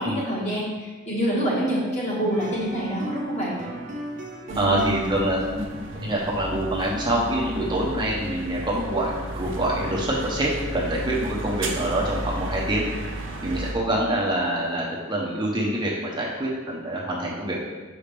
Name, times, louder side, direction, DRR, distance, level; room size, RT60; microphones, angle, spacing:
voice 1, 0.0-3.5 4.5-5.1, equal, 35° left, -6 dB, 1.9 m, -27 dB
sound 1, 2.3-7.9, right 1 dB, 40° right, 0.6 m, -38 dB
voice 2, 4.5-5.4 6.0-12.9 13.4-17.6, right 1 dB, 20° right, -5 dB, 0.9 m, -25 dB
sound 2, 4.5-13.7, right 1 dB, 65° right, 0.8 m, -34 dB
6.2 x 5.1 x 3.4 m, 1.2 s
head